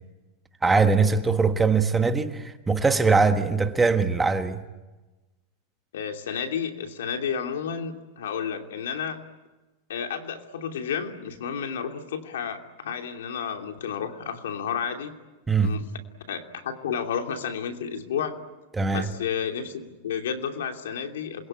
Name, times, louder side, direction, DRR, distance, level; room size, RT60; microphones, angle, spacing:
voice 1, 0.6-4.6 15.5-15.8 18.7-19.1, right 4 dB, 10° right, 1.4 m, -21 dB
voice 2, 5.9-9.2 9.9-15.2 15.6-15.9 16.3-18.4 18.9-21.5, left 7 dB, 85° left, 2.9 m, -31 dB
27.5 x 22.0 x 8.9 m
supercardioid pair, 150°, 0 cm